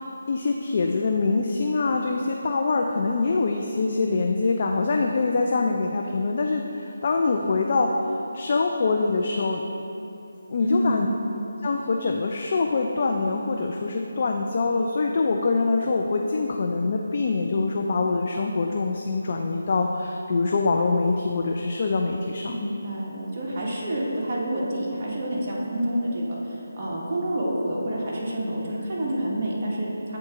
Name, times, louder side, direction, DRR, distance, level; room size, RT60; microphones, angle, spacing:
voice 1, 0.0-8.0 8.3-9.6 10.5-11.1 11.6-22.7, left 3 dB, 45° left, 2 dB, 0.3 m, -24 dB
voice 2, 10.6-11.2 22.5-30.2, right 1 dB, 35° right, -5 dB, 1.2 m, -28 dB
7.7 x 3.8 x 3.6 m, 2.8 s
figure-of-eight pair, 160°, 0 cm